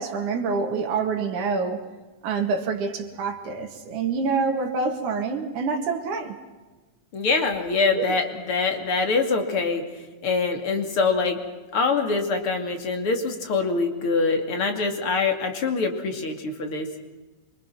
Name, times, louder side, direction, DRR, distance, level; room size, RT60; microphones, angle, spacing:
voice 1, 0.0-1.8 2.2-6.4 7.9-8.0, right 4 dB, 85° right, 2 dB, 3.4 m, -26 dB
voice 2, 7.1-9.9 10.2-11.4 11.7-16.9, left 4 dB, 45° left, 5 dB, 3.3 m, -24 dB
26.5 x 24.5 x 6.0 m, 1.2 s
omnidirectional pair, 3.4 m